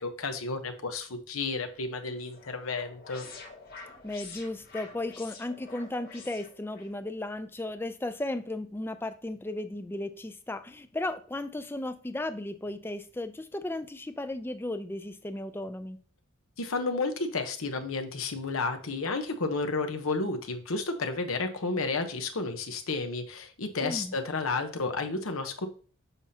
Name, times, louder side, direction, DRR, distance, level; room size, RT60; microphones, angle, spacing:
voice 1, 0.0-3.3 16.6-25.7, left 3 dB, 90° left, 6 dB, 0.9 m, -32 dB
sound 1, 1.7-6.9, left 4 dB, 45° left, 1.3 m, -47 dB
voice 2, 4.0-16.0 23.8-24.1, left 1 dB, 10° left, 10 dB, 0.4 m, -35 dB
7.0 x 5.6 x 2.8 m, 0.42 s
head